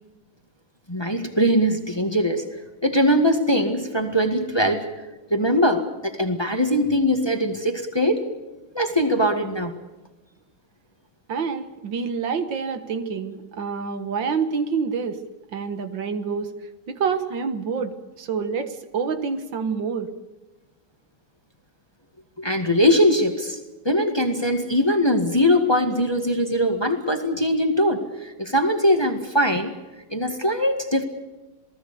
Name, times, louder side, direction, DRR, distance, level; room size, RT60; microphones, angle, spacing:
voice 1, 0.9-2.5 2.8-4.9 5.3-8.2 8.8-9.8 22.4-23.6 23.9-29.7 30.1-31.0, equal, 15° left, 6 dB, 1.8 m, -21 dB
voice 2, 11.3-15.2 15.5-16.5 16.9-20.1, right 5 dB, 75° right, 9 dB, 2.1 m, -27 dB
28.0 x 18.5 x 6.9 m, 1.1 s
omnidirectional pair, 2.1 m